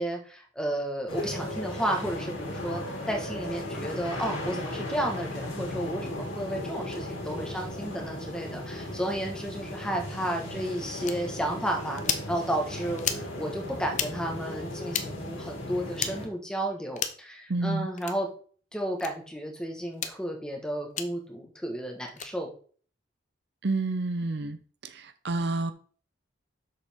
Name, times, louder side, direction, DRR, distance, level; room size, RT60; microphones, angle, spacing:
voice 1, 0.0-18.3 18.7-22.5, right 1 dB, 5° left, 1.3 m, -32 dB
sound 1, 1.1-16.3, left 1 dB, 85° left, 2.5 m, -36 dB
sound 2, 11.1-11.2 12.0-12.3 13.0-13.3 13.9-14.1 14.9-15.1 16.0-16.1 16.9-17.2 18.0-18.2 19.0-19.1 19.9-20.1 21.0-21.1 22.1-22.3, left 8 dB, 40° left, 0.7 m, -31 dB
voice 2, 17.5-17.9 23.6-24.6 24.9-25.7, right 2 dB, 55° right, 0.6 m, -29 dB
7.5 x 6.7 x 3.6 m
head